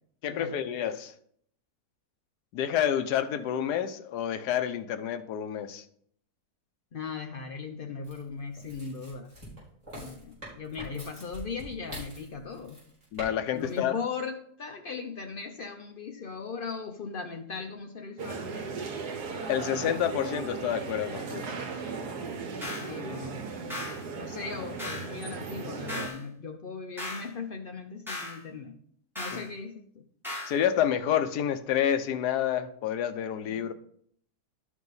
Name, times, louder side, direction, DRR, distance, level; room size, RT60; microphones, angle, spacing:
voice 1, 0.2-1.1 2.5-5.8 13.1-14.0 19.5-21.5 29.3-29.4 30.5-33.7, left 10 dB, 80° left, 1.2 m, -29 dB
voice 2, 6.9-9.3 9.9-12.9 13.5-18.9 22.8-23.8 24.2-28.7 29.2-30.0 33.5-33.7, left 5 dB, 65° left, 0.5 m, -38 dB
sound 1, 8.0-13.3 13.6-13.8, equal, 25° right, 4.2 m, -45 dB
sound 2, 18.2-26.1, right 4 dB, 75° right, 1.6 m, -37 dB
sound 3, 22.6-22.9 23.7-24.0 24.8-25.1 25.9-26.2 27.0-27.3 28.1-28.4 29.2-29.5 30.2-30.6, left 2 dB, ahead, 2.8 m, -37 dB
11.5 x 4.9 x 4.0 m
omnidirectional pair, 1.7 m